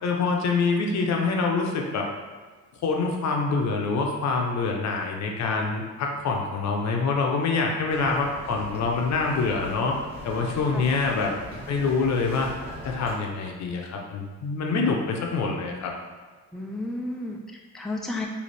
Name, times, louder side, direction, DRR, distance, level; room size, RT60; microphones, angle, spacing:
voice 1, 0.0-2.1 2.8-9.9 10.2-11.3 11.7-12.5 12.8-15.9, left 4 dB, 65° left, 1 dB, 0.7 m, -25 dB
Bird vocalization bird call bird song, 7.9-13.1, equal, 20° right, 1.4 m, -40 dB
voice 2, 16.5-18.3, left 2 dB, ahead, 0 dB, 0.4 m, -32 dB
4.0 x 2.7 x 3.3 m, 1.5 s
cardioid pair, 90°, 30 cm